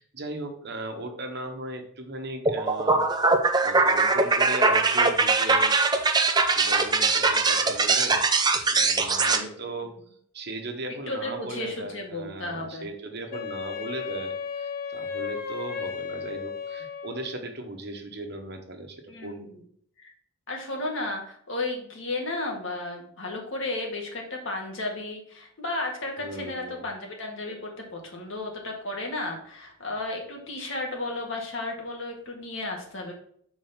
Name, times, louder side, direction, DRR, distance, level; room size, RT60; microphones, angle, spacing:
voice 1, 0.0-3.0 3.6-5.8 6.5-8.2 8.6-9.9 10.3-19.6 26.2-26.9, right 2 dB, 50° right, 4 dB, 1.3 m, -37 dB
sound 1, 2.5-9.4, right 3 dB, 20° right, 0.6 m, -22 dB
voice 2, 11.1-12.9 19.1-19.6 20.0-20.1 20.5-33.1, left 2 dB, 65° left, 0 dB, 2.0 m, -33 dB
Wind instrument woodwind instrument, 13.3-17.4, left 6 dB, 45° left, 0.8 m, -34 dB
6.3 x 4.5 x 5.7 m, 0.62 s
head